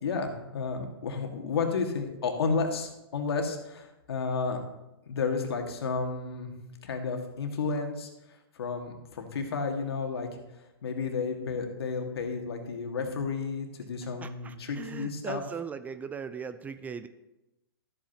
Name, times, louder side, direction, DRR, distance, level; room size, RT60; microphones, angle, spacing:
voice 1, 0.0-4.6 5.1-6.5 6.8-8.1 8.5-10.3 10.8-15.4, left 4 dB, 75° left, 3 dB, 1.8 m, -32 dB
voice 2, 14.0-17.1, right 6 dB, 10° right, 11 dB, 0.3 m, -39 dB
13.0 x 8.1 x 2.9 m, 0.96 s
hypercardioid pair, 130°, 13 cm